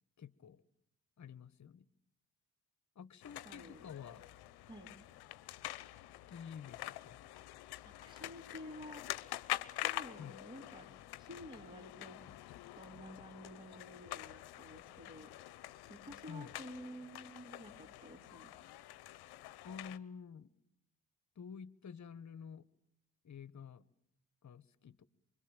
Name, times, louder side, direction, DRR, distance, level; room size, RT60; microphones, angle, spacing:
voice 1, 0.2-0.6 1.2-1.8 2.9-4.2 6.3-7.3 10.2-10.4 16.3-16.6 19.6-20.5 21.4-22.7 23.2-23.9 24.4-25.1, left 7 dB, 50° left, 16 dB, 1.3 m, -50 dB
sound 1, 3.2-20.0, left 16 dB, 80° left, 0.9 m, -46 dB
voice 2, 3.4-3.8 4.6-4.9 7.8-9.1 9.4-10.9 11.2-12.2 12.7-15.3 15.9-18.5, equal, 25° right, -3 dB, 4.3 m, -51 dB
24.5 x 22.5 x 9.0 m, 0.81 s
supercardioid pair, 50°, 38 cm